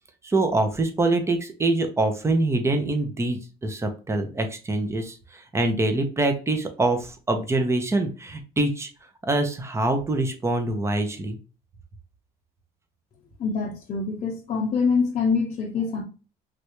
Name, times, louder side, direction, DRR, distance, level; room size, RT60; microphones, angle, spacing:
voice 1, 0.2-8.9 9.3-11.4, right 2 dB, 15° right, 0.7 m, -24 dB
voice 2, 13.4-16.0, left 5 dB, 40° left, 0.7 m, -25 dB
3.3 x 2.5 x 3.0 m
cardioid pair, 110°, 17 cm